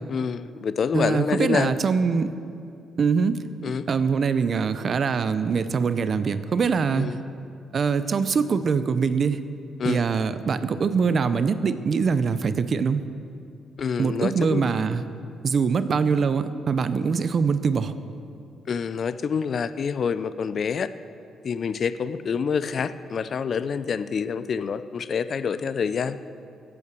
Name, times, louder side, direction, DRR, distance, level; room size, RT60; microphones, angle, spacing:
voice 1, 0.1-1.7 3.6-3.8 7.0-7.1 9.8-10.0 13.8-14.7 18.7-20.9 21.4-26.2, left 6 dB, 50° left, 14 dB, 0.5 m, -27 dB
voice 2, 0.9-2.3 3.0-3.4 3.9-7.1 7.7-9.4 9.8-13.0 14.0-15.0 15.4-17.9, right 5 dB, 50° right, 12 dB, 0.6 m, -23 dB
16.0 x 8.5 x 6.8 m, 2.5 s
cardioid pair, 90°, 0 cm